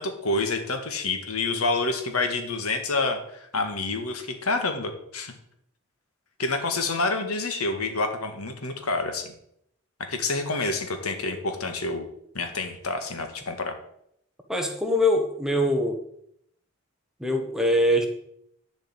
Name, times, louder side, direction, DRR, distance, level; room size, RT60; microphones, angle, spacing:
voice 1, 0.0-5.3 6.4-9.3 10.0-12.1 12.3-13.8, left 3 dB, 90° left, 6 dB, 1.8 m, -28 dB
voice 2, 14.5-16.0 17.2-18.1, left 1 dB, ahead, 3 dB, 1.2 m, -23 dB
11.0 x 5.3 x 8.1 m, 0.73 s
head